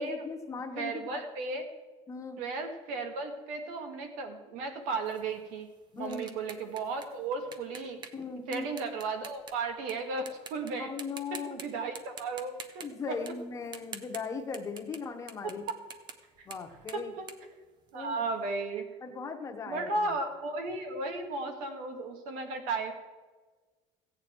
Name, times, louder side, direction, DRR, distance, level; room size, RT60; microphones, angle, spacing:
voice 1, 0.0-1.2 2.1-2.4 5.9-6.3 8.1-8.6 10.8-11.6 12.8-15.7 16.4-17.1 17.9-18.2 19.0-20.1, left 5 dB, 25° left, 5 dB, 1.1 m, -38 dB
voice 2, 0.8-1.7 2.4-5.7 6.0-8.0 8.5-10.9 11.5-12.8 16.4-16.5 16.9-17.3 17.9-18.9 19.7-22.9, right 3 dB, 85° right, 5 dB, 1.9 m, -35 dB
sound 1, 5.0-9.9 10.3-10.7 11.0-11.6 11.9-15.0 15.3-18.3, right 6 dB, 35° right, 0.8 m, -47 dB
15.0 x 8.9 x 4.6 m, 1.3 s
cardioid pair, 165°, 13 cm